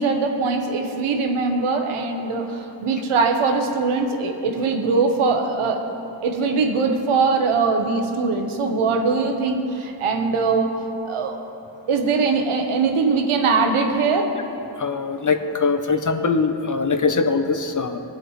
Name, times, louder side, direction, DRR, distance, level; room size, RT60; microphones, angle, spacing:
voice 1, 0.0-5.8 6.2-10.7 11.0-11.4 11.9-14.3, right 4 dB, 90° right, 3 dB, 1.4 m, -21 dB
voice 2, 14.8-18.0, left 4 dB, 40° left, 7 dB, 1.0 m, -22 dB
23.5 x 7.9 x 3.3 m, 3.0 s
cardioid pair, 80°, 49 cm